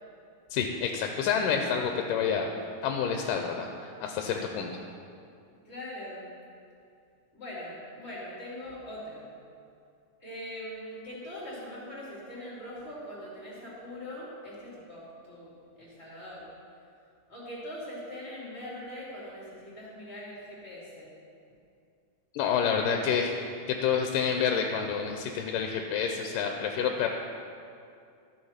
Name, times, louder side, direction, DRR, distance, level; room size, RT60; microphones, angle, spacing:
voice 1, 0.5-2.5 2.8-4.7 22.3-23.3 23.7-27.1, left 7 dB, 85° left, 3 dB, 2.3 m, -28 dB
voice 2, 5.6-6.3 7.3-9.2 10.2-16.4 17.3-21.1, left 1 dB, 20° left, -7 dB, 2.9 m, -42 dB
13.5 x 6.0 x 5.7 m, 2.4 s
omnidirectional pair, 3.8 m